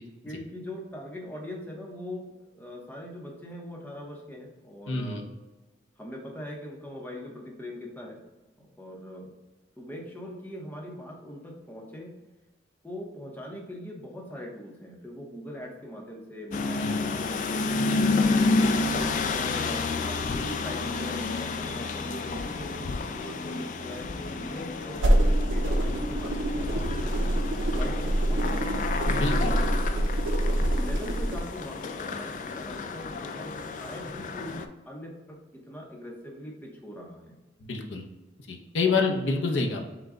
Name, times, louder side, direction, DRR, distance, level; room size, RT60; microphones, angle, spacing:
voice 1, 0.2-2.3 2.5-5.3 6.0-8.2 8.5-9.3 9.8-12.1 12.8-18.7 19.2-27.2 27.6-28.8 29.4-30.4 30.7-37.4 38.8-39.6, left 1 dB, 10° left, -2 dB, 0.8 m, -41 dB
voice 2, 4.9-5.2 16.8-17.1 17.7-18.0 29.1-29.5 37.7-38.0 38.5-39.8, left 4 dB, 85° left, 1 dB, 0.7 m, -28 dB
sound 1, 16.5-34.6, left 3 dB, 40° left, 0.3 m, -30 dB
sound 2, 24.9-31.4, right 1 dB, 90° right, 0.6 m, -25 dB
6.0 x 2.2 x 3.7 m, 1.1 s
head